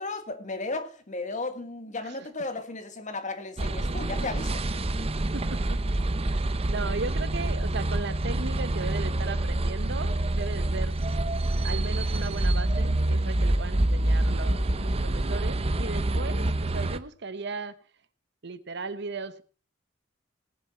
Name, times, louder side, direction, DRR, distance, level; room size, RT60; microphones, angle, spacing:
voice 1, 0.0-4.6, left 3 dB, 40° left, 1.6 m, -35 dB
sound 1, 3.6-17.0, right 1 dB, 30° right, 0.7 m, -27 dB
voice 2, 5.3-5.8 6.2-10.9 11.6-17.8 18.4-19.4, right 3 dB, 60° right, 1.0 m, -37 dB
18.5 x 7.2 x 5.6 m
head